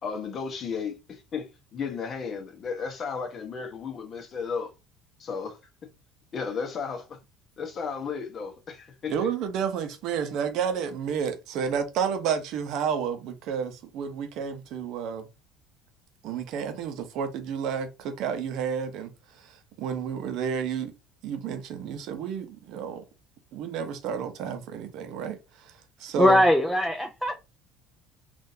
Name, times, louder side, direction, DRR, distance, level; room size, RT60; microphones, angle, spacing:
voice 1, 0.0-4.7 5.2-5.6 6.3-7.2 7.6-9.1, left 5 dB, 40° left, 1.0 m, -34 dB
voice 2, 9.1-15.3 16.2-20.9 21.2-23.0 23.5-26.4, right 7 dB, 65° right, 0.7 m, -31 dB
voice 3, 26.2-27.4, left 1 dB, 5° left, 0.5 m, -21 dB
3.7 x 2.5 x 2.7 m
supercardioid pair, 110°, 0 cm